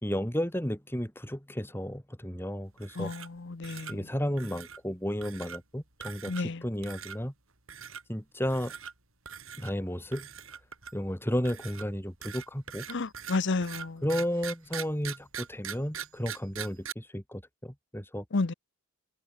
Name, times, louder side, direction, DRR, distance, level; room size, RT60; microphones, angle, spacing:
voice 1, 0.0-3.1 3.9-7.3 8.1-8.7 9.6-10.3 10.9-12.9 14.0-18.2, equal, 10° left, 4.5 m, -33 dB
sound 1, 2.8-3.4 3.6-3.9 4.4-4.8 5.2-5.6 6.0-6.5 6.8-7.2 7.7-8.0 8.5-8.9 9.3-9.7 10.1-11.0 11.5-16.9, right 8 dB, 65° right, 7.9 m, -41 dB
voice 2, 3.6-3.9 6.3-6.6 12.9-14.0 18.3-18.5, left 3 dB, 55° left, 0.7 m, -30 dB
head